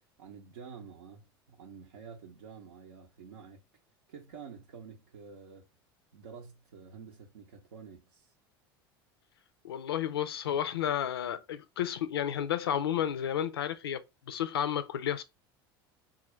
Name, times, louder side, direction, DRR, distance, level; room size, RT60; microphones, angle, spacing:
voice 1, 0.2-3.6 4.1-5.7 6.1-8.3, right 6 dB, 85° right, 0.7 m, -49 dB
voice 2, 9.6-15.2, left 10 dB, 90° left, 0.4 m, -32 dB
3.6 x 2.4 x 3.1 m
hypercardioid pair, 85°, 12 cm